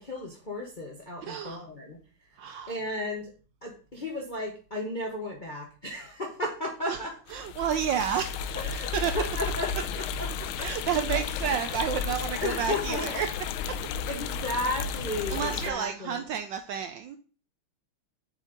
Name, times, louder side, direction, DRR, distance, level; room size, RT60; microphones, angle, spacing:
voice 1, 0.0-2.0 2.7-3.3 3.6-7.1 8.5-10.5 12.4-13.2 14.1-16.2, left 1 dB, 40° left, 0.6 m, -34 dB
voice 2, 1.2-1.6 2.4-2.8 6.9-7.0 7.3-8.6 8.9-9.2 10.6-13.3 13.7-13.8 15.3-17.2, right 8 dB, 75° right, 1.0 m, -30 dB
sound 1, 7.3-15.7, left 6 dB, 80° left, 1.4 m, -33 dB
7.3 x 5.2 x 3.8 m
omnidirectional pair, 2.4 m